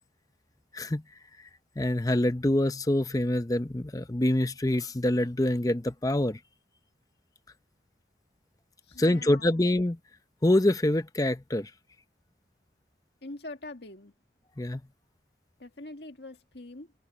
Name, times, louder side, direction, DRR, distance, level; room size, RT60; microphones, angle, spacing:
voice 1, 1.8-6.4 9.0-10.0 10.4-11.7 14.6-14.8, left 1 dB, 20° left, 0.7 m, -25 dB
voice 2, 8.8-9.5 13.2-14.1 15.6-16.9, left 2 dB, 65° left, 2.0 m, -43 dB
open air
head